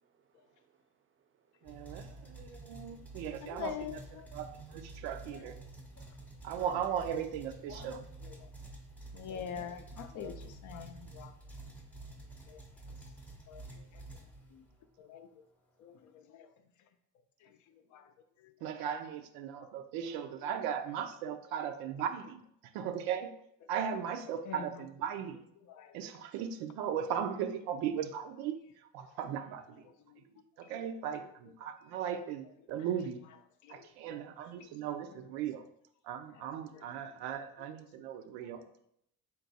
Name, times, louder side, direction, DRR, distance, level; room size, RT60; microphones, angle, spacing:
voice 1, 0.0-3.2 4.2-4.3, right 7 dB, 35° right, 0.5 m, -74 dB
sound 1, 1.6-14.8, right 2 dB, 5° left, 0.6 m, -50 dB
voice 2, 1.6-4.0 4.3-5.6 6.4-8.1 18.6-22.4 22.7-23.3 23.7-25.4 25.9-28.6 28.9-29.9 30.6-33.2 33.7-35.7 36.0-38.6, right 8 dB, 90° right, 0.5 m, -37 dB
voice 3, 3.4-4.3 5.3-5.5 7.7-7.9 8.2-8.5 9.1-11.3 12.5-12.6 13.5-13.6 13.9-14.0 14.5-14.6 15.0-15.3 15.8-16.5 17.4-17.5 17.9-18.1 19.6-19.7 24.5-24.9 25.7-26.0 30.1-30.2 30.6-30.8 33.6-33.9 34.6-34.7 35.1-35.2 36.3-36.4 36.7-37.1 38.5-38.6, left 8 dB, 60° left, 0.5 m, -45 dB
3.8 x 2.3 x 4.0 m
cardioid pair, 110°, 35 cm